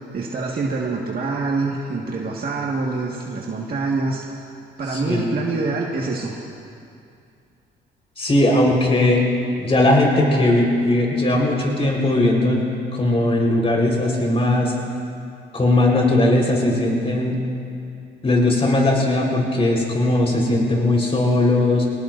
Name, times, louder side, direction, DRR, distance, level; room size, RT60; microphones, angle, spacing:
voice 1, 0.1-4.2 4.8-6.3, right 3 dB, 50° right, -2 dB, 1.7 m, -25 dB
voice 2, 4.9-5.3 8.2-9.2 9.6-12.7 12.9-14.7 15.5-17.4 18.2-21.8, left 1 dB, 30° left, -2 dB, 4.2 m, -18 dB
25.0 x 18.5 x 2.6 m, 2.5 s
cardioid pair, 90°, 20 cm